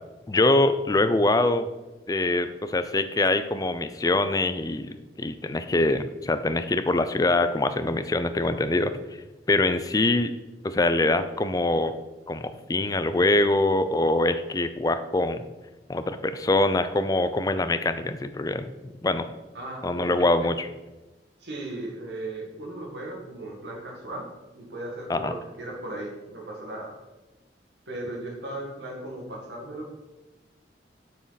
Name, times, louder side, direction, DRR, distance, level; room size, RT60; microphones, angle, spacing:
voice 1, 0.3-1.7 2.1-8.9 9.5-10.3 10.6-11.9 12.3-15.4 15.9-18.7 19.0-19.3 19.8-20.7 25.1-25.3, left 2 dB, 20° left, 10 dB, 0.4 m, -24 dB
voice 2, 19.5-20.5 21.4-24.3 24.5-26.9 27.9-29.9, right 1 dB, 80° right, -1 dB, 1.9 m, -37 dB
7.4 x 6.3 x 4.0 m, 1.1 s
head